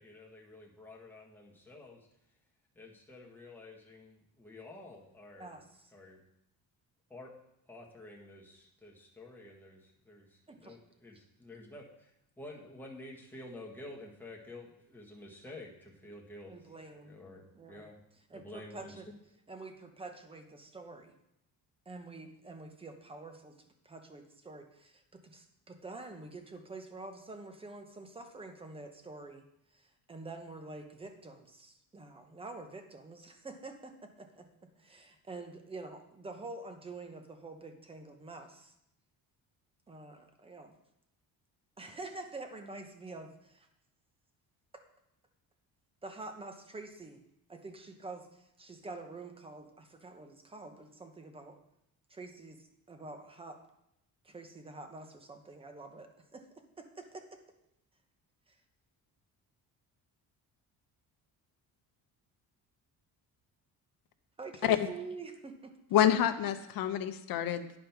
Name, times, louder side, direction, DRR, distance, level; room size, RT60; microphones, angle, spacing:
voice 1, 0.0-2.1 2.7-5.6 5.9-6.2 7.1-7.3 7.7-10.3 10.5-12.1 12.4-16.7 17.0-17.4 17.7-18.0 18.3-19.0, left 2 dB, 5° left, -3 dB, 1.5 m, -50 dB
voice 2, 5.3-5.9 10.5-10.8 16.5-17.2 17.5-17.9 18.3-19.1 19.5-21.1 21.9-23.6 23.8-29.4 29.7-38.7 39.9-40.7 41.8-43.7 46.0-47.2 47.5-51.6 52.1-53.6 54.2-56.5 56.8-57.4 64.4-65.8, right 3 dB, 15° right, 6 dB, 0.9 m, -47 dB
voice 3, 65.9-67.8, left 10 dB, 65° left, 8 dB, 0.8 m, -27 dB
9.7 x 5.2 x 5.8 m, 0.80 s
cardioid pair, 165°, 37 cm